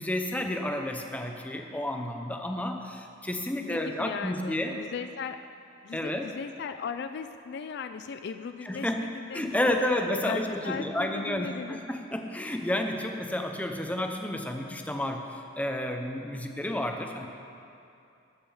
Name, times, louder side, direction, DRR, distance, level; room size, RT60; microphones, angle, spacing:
voice 1, 0.0-4.8 5.9-6.3 8.6-9.0 9.3-17.3, left 1 dB, 5° left, 4 dB, 0.7 m, -31 dB
voice 2, 3.6-5.5 5.8-9.7 10.2-11.8, left 6 dB, 55° left, 9 dB, 0.3 m, -38 dB
15.0 x 5.4 x 7.1 m, 2.6 s
head